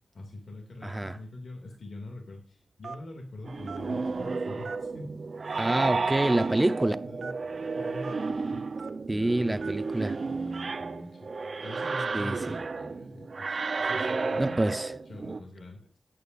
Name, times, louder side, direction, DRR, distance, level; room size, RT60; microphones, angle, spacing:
voice 1, 0.1-5.1 7.0-7.3 7.7-8.8 9.1-16.0, left 1 dB, 70° left, 2.4 m, -44 dB
voice 2, 0.8-1.2 5.6-7.0 9.1-10.2 12.1-12.6 14.4-14.9, right 1 dB, 15° right, 0.8 m, -27 dB
Telephone, 2.8-3.1 3.7-3.8 4.6-5.0 5.5-5.6 6.3-6.5 7.2-7.3 8.0-8.1 8.8-8.9 9.6-9.8 10.5-10.7, right 5 dB, 85° right, 1.2 m, -41 dB
sound 1, 3.4-15.4, right 4 dB, 55° right, 0.7 m, -32 dB
18.0 x 8.8 x 2.6 m
wide cardioid pair, 95°, 0 cm